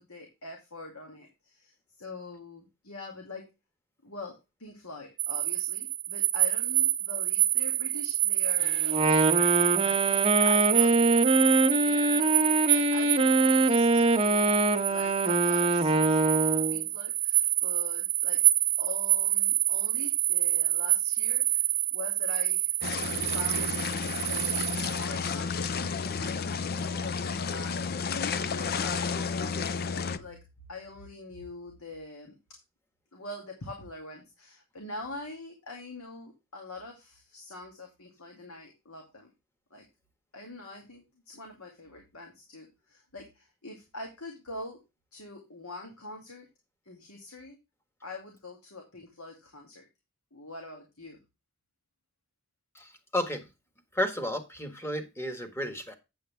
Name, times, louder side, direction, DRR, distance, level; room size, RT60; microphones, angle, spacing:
voice 1, 0.0-3.5 4.0-11.2 11.5-12.3 12.7-14.6 14.9-18.4 18.8-22.7 23.3-23.8 24.2-30.4 30.7-32.3 33.1-39.3 39.7-39.9 40.3-44.8 45.1-46.5 46.9-47.6 48.0-49.9 50.3-51.2, left 2 dB, 80° left, 1 dB, 2.4 m, -44 dB
sound 1, 5.2-25.0, right 13 dB, 85° right, 0.8 m, -27 dB
Wind instrument woodwind instrument, 8.8-16.8, right 2 dB, 25° right, 1.0 m, -24 dB
sound 2, 22.8-30.2, left 5 dB, 45° left, 0.5 m, -31 dB
voice 2, 52.7-53.4 53.9-56.0, left 1 dB, 10° left, 6 dB, 1.6 m, -32 dB
8.7 x 8.0 x 3.4 m, 0.25 s
head